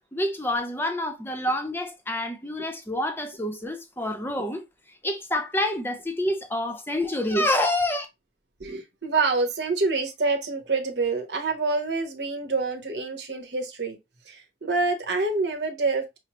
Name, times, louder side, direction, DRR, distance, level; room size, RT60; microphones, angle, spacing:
voice 1, 0.1-4.6 5.0-8.1, left 1 dB, 10° left, 0.6 m, -27 dB
voice 2, 8.6-14.0 14.3-16.2, right 3 dB, 80° right, 1.0 m, -27 dB
6.0 x 2.0 x 3.0 m
head